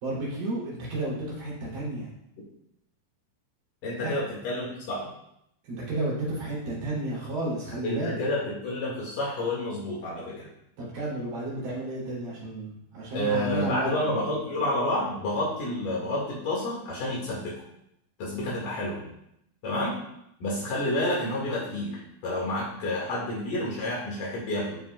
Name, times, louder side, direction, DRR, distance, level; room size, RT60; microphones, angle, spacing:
voice 1, 0.0-2.1 4.0-4.1 5.6-8.2 10.8-13.9, right 2 dB, 80° right, -6 dB, 4.7 m, -32 dB
voice 2, 3.8-5.1 7.8-10.5 13.1-17.5 18.2-19.0 19.6-20.0 20.4-24.8, left 1 dB, 75° left, -5 dB, 3.3 m, -29 dB
15.5 x 5.1 x 2.3 m, 0.77 s
omnidirectional pair, 3.9 m